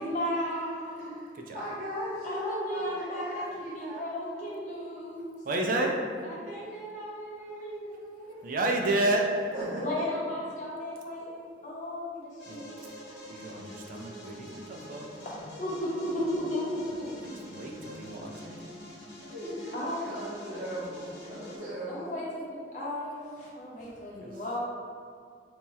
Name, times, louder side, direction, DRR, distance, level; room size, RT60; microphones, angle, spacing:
voice 1, 0.0-1.1 2.2-5.3 6.2-8.4 9.8-12.7 15.2-15.3 15.6-17.0 19.7-20.1 21.9-24.6, left 1 dB, 45° left, -6 dB, 0.8 m, -35 dB
voice 2, 1.0-1.3 1.5-4.5 9.5-10.1 19.3-22.1, equal, 65° right, -10 dB, 1.4 m, -37 dB
voice 3, 5.4-6.0 8.4-9.4 12.5-12.7 13.3-15.1 17.1-18.7 24.2-24.4, right 2 dB, 50° right, 2 dB, 0.4 m, -31 dB
sound 1, 12.4-21.6, left 1 dB, 85° left, 1.0 m, -46 dB
2.9 x 2.3 x 4.1 m, 2.2 s
head